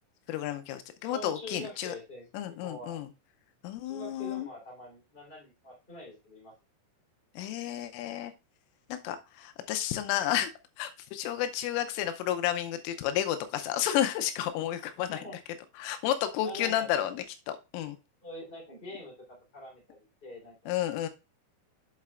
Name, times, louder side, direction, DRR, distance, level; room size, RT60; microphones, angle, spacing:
voice 1, 0.3-1.9 2.3-3.1 3.6-4.5 7.4-8.3 8.9-10.5 10.8-15.2 15.8-18.0 20.7-21.1, left 11 dB, 90° left, 8 dB, 3.3 m, -31 dB
voice 2, 1.0-3.0 3.8-6.5 15.1-15.4 16.4-17.1 18.2-20.7, left 1 dB, 15° left, -3 dB, 2.9 m, -45 dB
7.7 x 7.4 x 2.4 m, 0.27 s
omnidirectional pair, 5.6 m